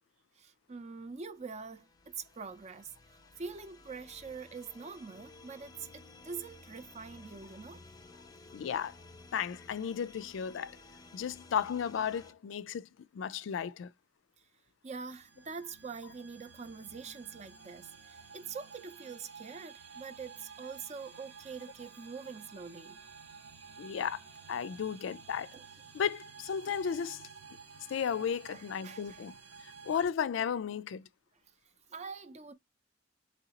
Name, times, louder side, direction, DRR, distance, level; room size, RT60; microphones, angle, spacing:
voice 1, 0.4-2.9 3.4-7.8 14.8-23.0 25.5-25.6 26.7-26.8 28.5-29.3 31.9-32.5, right 5 dB, 35° right, 0.5 m, -44 dB
sound 1, 1.4-12.3, left 3 dB, 20° left, 0.5 m, -55 dB
voice 2, 8.5-9.0 9.3-10.8 11.1-13.9 23.8-25.5 25.9-27.2 27.9-29.3 29.6-31.0, left 7 dB, 90° left, 0.3 m, -34 dB
sound 2, 15.1-30.1, right 5 dB, 80° right, 0.9 m, -52 dB
3.9 x 3.1 x 2.8 m
head